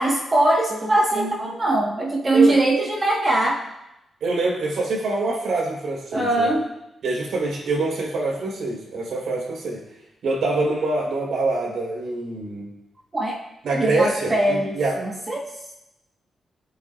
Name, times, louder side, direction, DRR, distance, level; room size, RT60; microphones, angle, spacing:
voice 1, 0.0-3.6 6.1-6.7 13.1-13.4 13.7-15.5, right 2 dB, 20° right, -2 dB, 1.4 m, -21 dB
voice 2, 4.2-6.5 7.0-9.8 10.2-12.7 13.6-15.0, right 2 dB, 80° right, -3 dB, 3.9 m, -25 dB
23.0 x 8.1 x 2.4 m, 0.90 s
wide cardioid pair, 170°, 0 cm